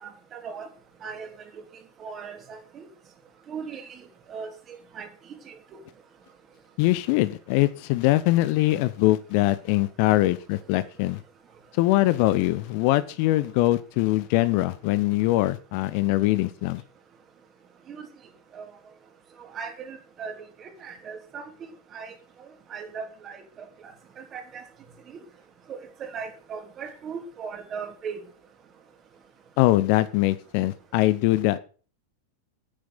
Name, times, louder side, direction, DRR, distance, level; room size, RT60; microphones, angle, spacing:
voice 1, 0.0-0.7 1.0-1.3 2.0-2.9 3.5-4.0 4.3-4.5 4.9-5.1 5.4-5.8 17.9-18.1 18.5-18.7 19.5-20.3 20.6-22.1 22.7-23.4 24.2-24.6 25.1-25.2 25.7-28.2, right 6 dB, 25° right, 3.3 m, -38 dB
voice 2, 6.8-11.2 11.7-16.8 29.6-31.6, left 17 dB, 45° left, 0.8 m, -22 dB
10.0 x 9.6 x 8.4 m
figure-of-eight pair, 90°, 0 cm